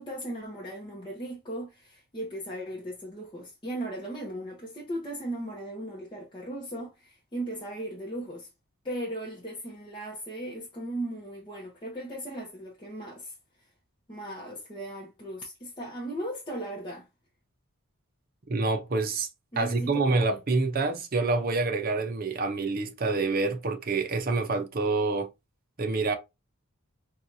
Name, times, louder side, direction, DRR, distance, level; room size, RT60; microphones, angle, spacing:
voice 1, 0.0-8.5 8.8-13.7 14.1-17.1 19.5-20.4, right 1 dB, 20° left, 0.8 m, -37 dB
voice 2, 18.5-19.3 19.6-25.3 25.8-26.1, right 3 dB, 40° right, 0.7 m, -27 dB
4.5 x 2.4 x 2.6 m
head